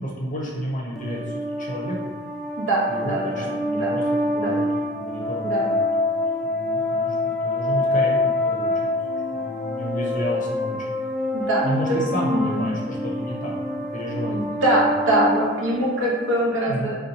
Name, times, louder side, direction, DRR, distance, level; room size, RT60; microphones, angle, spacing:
voice 1, 0.0-2.2 2.9-4.7 4.9-6.2 6.4-8.9 9.3-11.1 11.6-14.6 14.8-14.9 16.7-16.9, equal, 35° left, -3 dB, 0.7 m, -31 dB
sound 1, 1.0-16.4, left 1 dB, ahead, 0.3 m, -26 dB
voice 2, 2.6-3.9 4.3-4.6 5.4-5.7 11.3-12.0 12.3-12.6 14.2-16.9, right 1 dB, 60° right, -4 dB, 0.8 m, -23 dB
2.8 x 2.3 x 4.0 m, 1.3 s
head